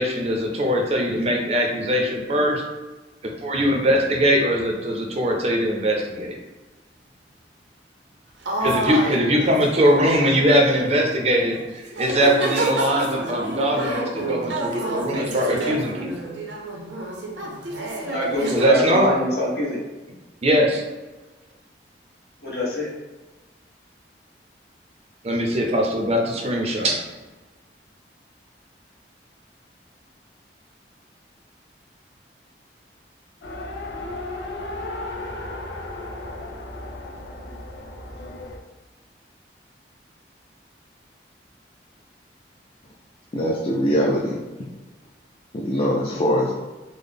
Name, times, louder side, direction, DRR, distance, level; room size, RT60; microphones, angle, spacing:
voice 1, 0.0-2.6 3.2-6.4 8.6-16.1 18.5-19.1 20.4-20.8 25.2-27.0, equal, 35° right, 1 dB, 0.5 m, -21 dB
sound 1, 8.5-11.0 11.5-11.6 11.9-18.6, right 2 dB, 80° right, 0.6 m, -28 dB
voice 2, 9.0-9.4 18.1-19.8 22.4-22.9, left 1 dB, 65° left, -5 dB, 1.2 m, -25 dB
Race car auto racing, 33.4-38.6, left 2 dB, 85° left, 0.6 m, -34 dB
voice 3, 43.3-44.4 45.5-46.5, equal, 30° left, -3 dB, 0.3 m, -22 dB
3.8 x 2.0 x 3.4 m, 1.2 s
head